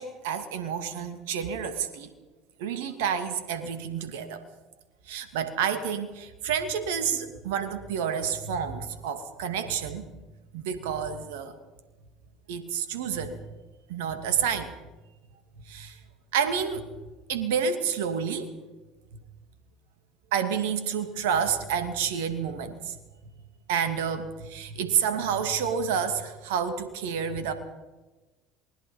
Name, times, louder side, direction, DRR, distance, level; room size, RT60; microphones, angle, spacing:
voice 1, 0.0-2.1 2.6-4.4 5.1-10.0 10.5-11.5 12.5-13.4 13.9-14.7 15.7-16.0 16.3-16.9 17.3-18.5 20.3-23.0 23.7-27.5, right 7 dB, 70° right, 9 dB, 2.5 m, -29 dB
27.5 x 20.5 x 5.4 m, 1.2 s
hypercardioid pair, 65°, 0 cm